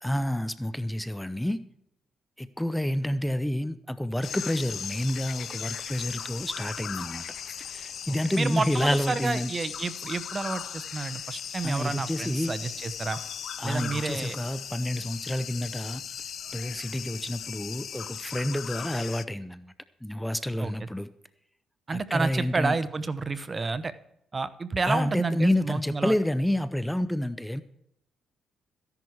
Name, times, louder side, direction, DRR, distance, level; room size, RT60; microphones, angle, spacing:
voice 1, 0.0-1.6 2.4-7.2 7.6-9.5 11.6-12.5 13.6-16.0 16.5-19.7 20.0-21.1 21.9-22.8 24.8-27.6, left 1 dB, 5° left, 14 dB, 0.6 m, -29 dB
sound 1, 4.2-19.2, left 8 dB, 60° left, 0.6 m, -38 dB
voice 2, 8.1-13.2 13.6-14.4 20.6-20.7 21.9-23.9 24.3-26.2, right 4 dB, 30° right, 14 dB, 0.9 m, -30 dB
14.5 x 11.0 x 4.6 m, 0.78 s
cardioid pair, 90°, 0 cm